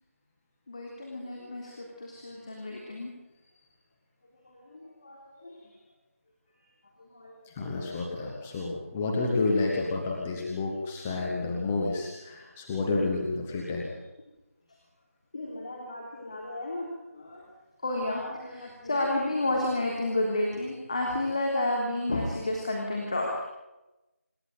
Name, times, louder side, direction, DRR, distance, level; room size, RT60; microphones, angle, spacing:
voice 1, 0.7-3.1 4.4-5.6 7.0-7.4 15.3-17.5 17.8-23.3, left 1 dB, 25° left, 0 dB, 3.4 m, -31 dB
voice 2, 7.4-13.9, left 3 dB, 5° left, -2 dB, 0.8 m, -30 dB
26.5 x 12.0 x 9.5 m, 1.0 s
figure-of-eight pair, 175°, 8 cm